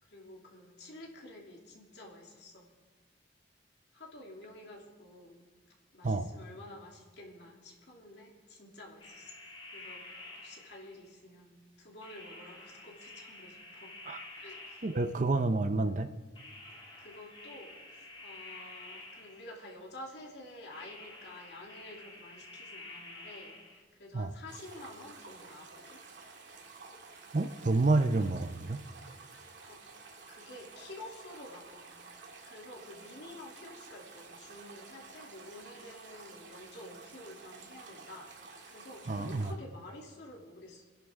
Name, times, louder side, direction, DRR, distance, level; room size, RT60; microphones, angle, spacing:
voice 1, 0.0-2.7 3.9-5.5 5.9-9.3 9.7-13.9 14.3-14.9 16.7-26.0 29.7-29.8 30.3-32.0 32.5-40.8, left 1 dB, 65° left, -2 dB, 2.8 m, -50 dB
sound 1, 9.0-11.1 12.0-15.4 16.3-19.7 20.7-23.8, left 2 dB, 30° left, 2.5 m, -50 dB
voice 2, 14.8-16.1 24.1-24.3 27.3-28.8 39.1-39.5, right 3 dB, 45° right, 9 dB, 0.6 m, -29 dB
sound 2, 24.5-39.5, right 4 dB, 80° right, 2.2 m, -51 dB
26.5 x 10.5 x 3.6 m, 1.4 s
head